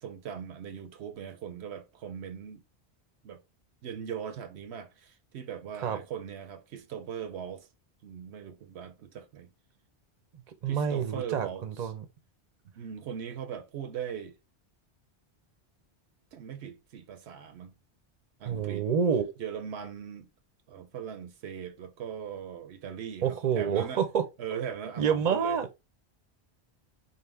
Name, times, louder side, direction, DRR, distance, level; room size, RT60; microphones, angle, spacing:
voice 1, 0.0-2.6 3.2-3.4 3.8-7.7 8.0-9.5 10.7-11.9 12.7-14.4 16.3-17.7 18.4-18.9 19.4-20.3 20.7-24.0 24.4-25.6, right 8 dB, 80° right, 0.9 m, -40 dB
voice 2, 10.6-12.0 18.5-19.3 23.2-24.2 25.0-25.7, right 7 dB, 45° right, 0.7 m, -28 dB
5.7 x 2.1 x 3.3 m
omnidirectional pair, 1.1 m